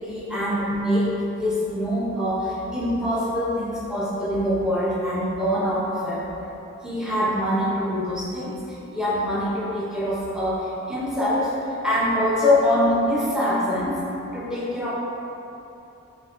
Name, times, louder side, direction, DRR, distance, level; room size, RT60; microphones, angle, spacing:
voice 1, 0.0-6.3 6.8-8.6 8.9-11.5 11.8-14.0 14.3-14.9, left 1 dB, 5° right, -7 dB, 0.6 m, -24 dB
6.3 x 2.8 x 2.5 m, 2.9 s
head